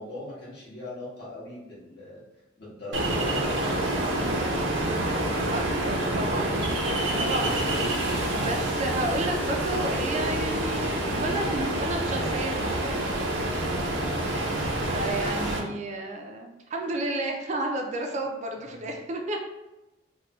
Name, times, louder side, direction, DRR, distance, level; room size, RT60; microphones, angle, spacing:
voice 1, 0.0-2.2 2.6-6.7 14.1-14.6 18.6-18.8, left 1 dB, 60° left, -8 dB, 1.4 m, -42 dB
Ocean, 2.9-15.6, right 1 dB, 80° right, 0.6 m, -27 dB
voice 2, 5.5-6.6 7.2-7.6 8.3-13.3 14.9-19.4, right 1 dB, 40° right, 2 dB, 0.4 m, -32 dB
3.3 x 2.1 x 3.0 m, 1.0 s
head